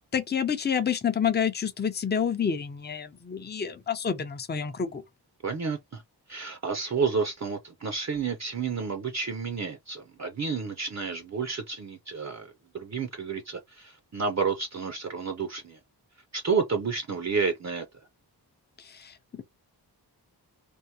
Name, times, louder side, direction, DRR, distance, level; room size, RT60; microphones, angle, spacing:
voice 1, 0.1-5.0 18.8-19.4, left 7 dB, 25° left, 0.5 m, -29 dB
voice 2, 5.4-6.0 6.3-15.8 16.3-17.9, right 5 dB, 40° right, 0.6 m, -30 dB
3.5 x 2.5 x 2.8 m
wide cardioid pair, 115°, 41 cm